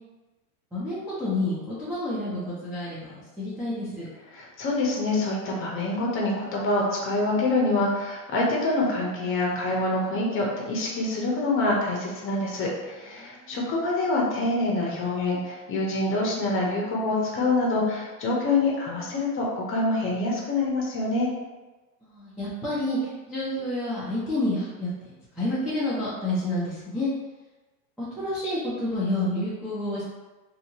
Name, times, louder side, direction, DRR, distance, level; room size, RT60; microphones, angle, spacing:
voice 1, 0.7-4.1 13.2-13.6 22.0-27.1 28.0-30.0, left 1 dB, ahead, -12 dB, 0.4 m, -29 dB
voice 2, 4.3-21.3, left 2 dB, 25° left, -2 dB, 0.8 m, -26 dB
2.8 x 2.7 x 2.7 m, 1.2 s
hypercardioid pair, 115°, 48 cm